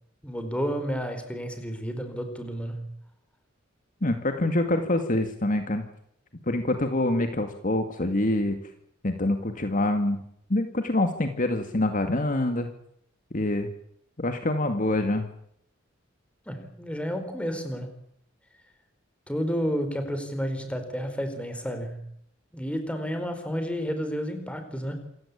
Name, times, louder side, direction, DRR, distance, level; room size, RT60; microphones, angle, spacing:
voice 1, 0.2-2.9 16.5-17.9 19.3-22.0 22.5-25.0, equal, 5° left, 7 dB, 4.5 m, -31 dB
voice 2, 4.0-5.8 6.5-8.6 9.0-10.2 10.5-12.7 13.3-13.7 14.2-15.3, left 1 dB, 45° left, 7 dB, 2.2 m, -25 dB
27.5 x 15.5 x 8.7 m, 0.71 s
head